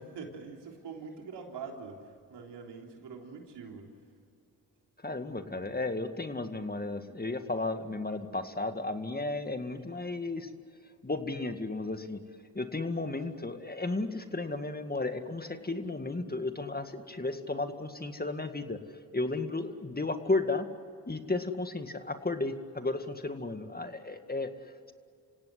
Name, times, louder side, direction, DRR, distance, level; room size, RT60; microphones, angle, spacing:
voice 1, 0.0-3.9, right 5 dB, 80° right, 2 dB, 3.6 m, -44 dB
voice 2, 5.0-10.5 11.0-12.2 12.5-18.8 19.1-20.7 21.1-24.5, left 2 dB, 25° left, 8 dB, 2.1 m, -34 dB
27.5 x 17.0 x 9.8 m, 2.4 s
supercardioid pair, 50°, 40 cm